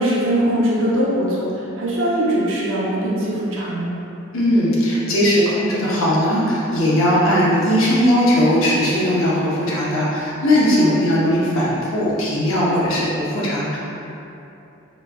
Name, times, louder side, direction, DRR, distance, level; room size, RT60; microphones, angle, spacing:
voice 1, 0.0-3.9 10.7-11.0, right 1 dB, 65° right, -6 dB, 0.7 m, -21 dB
voice 2, 4.3-13.8, equal, 75° left, -6 dB, 0.8 m, -18 dB
3.4 x 3.0 x 2.2 m, 2.8 s
head